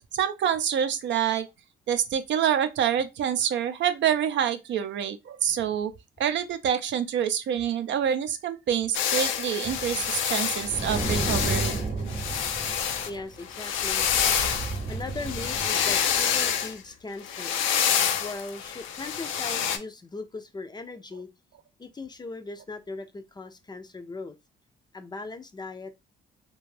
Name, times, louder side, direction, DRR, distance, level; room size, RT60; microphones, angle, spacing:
voice 1, 0.1-1.5 1.9-5.9 6.2-11.8, right 9 dB, 65° right, 0.5 m, -26 dB
sound 1, 8.9-13.1 13.4-16.7 17.2-19.8, left 8 dB, 85° left, 0.5 m, -27 dB
sound 2, 9.6-13.3 13.8-16.3, right 3 dB, 40° right, 0.8 m, -33 dB
voice 2, 13.1-14.1 14.9-17.6 18.2-21.3 21.8-24.4 24.9-25.9, left 3 dB, 20° left, 0.4 m, -38 dB
2.5 x 2.2 x 3.2 m
cardioid pair, 90°, 20 cm